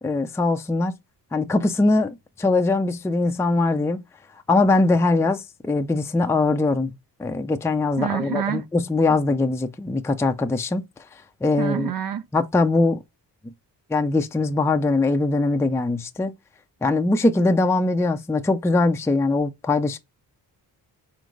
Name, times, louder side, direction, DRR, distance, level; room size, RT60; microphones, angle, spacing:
voice 1, 0.0-1.0 1.3-4.0 4.5-6.9 7.2-10.9 11.4-11.9 12.3-13.0 13.9-16.3 16.8-20.0, left 3 dB, 5° left, 0.4 m, -21 dB
voice 2, 8.0-8.6 11.6-12.3, right 9 dB, 55° right, 0.5 m, -27 dB
4.3 x 3.8 x 3.1 m
cardioid pair, 80°, 42 cm